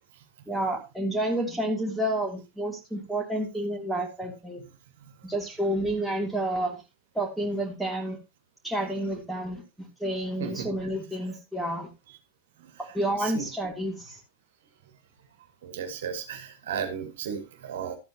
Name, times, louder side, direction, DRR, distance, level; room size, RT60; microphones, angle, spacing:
voice 1, 0.5-4.6 5.2-6.8 7.1-8.2 8.6-11.9 12.8-14.2, right 1 dB, 5° right, -1 dB, 3.3 m, -30 dB
voice 2, 15.6-18.0, right 7 dB, 60° right, 6 dB, 2.2 m, -34 dB
13.0 x 8.8 x 3.0 m, 0.28 s
figure-of-eight pair, 90°, 0 cm